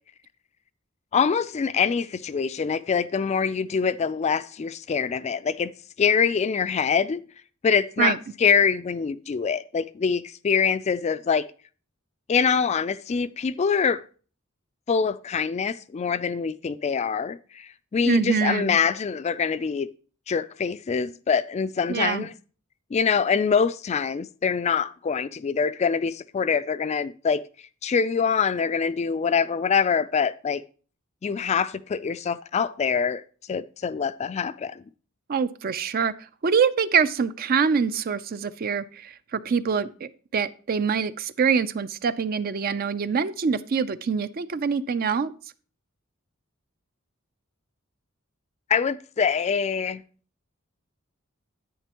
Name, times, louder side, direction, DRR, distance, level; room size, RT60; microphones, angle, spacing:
voice 1, 1.1-5.7 6.0-7.2 7.6-11.5 12.3-14.0 14.9-19.9 20.3-22.3 22.9-27.4 27.8-30.6 31.2-33.2 33.5-34.8 48.7-50.0, left 6 dB, 30° left, 0.3 m, -24 dB
voice 2, 18.1-18.8 21.9-22.3 35.3-36.1 36.4-45.3, right 6 dB, 45° right, 0.4 m, -24 dB
10.0 x 9.0 x 2.9 m
head